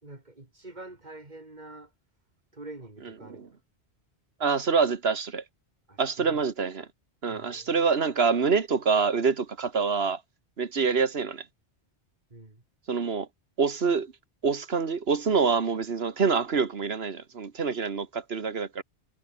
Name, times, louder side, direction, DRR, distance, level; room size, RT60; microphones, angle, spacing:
voice 1, 0.0-1.9 2.5-3.6 5.9-6.4 7.3-7.7 12.3-12.6, right 2 dB, 40° right, 3.4 m, -46 dB
voice 2, 4.4-5.4 6.0-6.9 7.2-10.2 10.6-11.4 12.9-13.3 13.6-14.1 14.4-18.8, right 5 dB, 70° right, 1.7 m, -26 dB
omnidirectional pair, 1.1 m